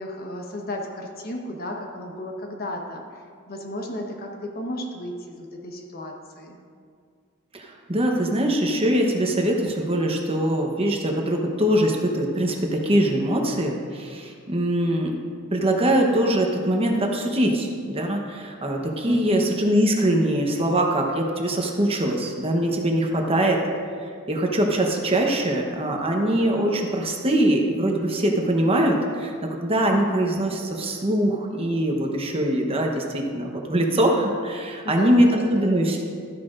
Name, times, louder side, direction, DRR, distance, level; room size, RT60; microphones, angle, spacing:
voice 1, 0.0-3.0 3.5-6.6 19.1-19.5 34.8-35.7, left 1 dB, 45° left, 1 dB, 1.1 m, -34 dB
voice 2, 7.5-15.1 15.5-23.6 24.3-36.0, right 1 dB, 25° right, 1 dB, 1.0 m, -22 dB
13.0 x 10.0 x 2.5 m, 2.1 s
head